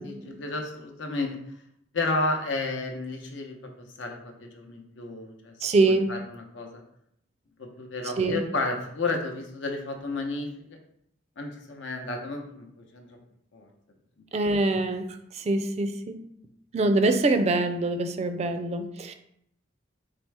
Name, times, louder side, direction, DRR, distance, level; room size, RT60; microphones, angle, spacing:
voice 1, 0.0-1.4 1.9-5.5 5.9-6.8 7.6-10.5 11.4-13.2 13.5-13.7, left 3 dB, 80° left, 2 dB, 0.8 m, -32 dB
voice 2, 5.6-6.1 8.2-8.4 14.3-15.1 15.4-16.2 16.7-19.1, right 2 dB, 35° right, 8 dB, 0.3 m, -24 dB
4.3 x 3.5 x 3.4 m, 0.73 s
head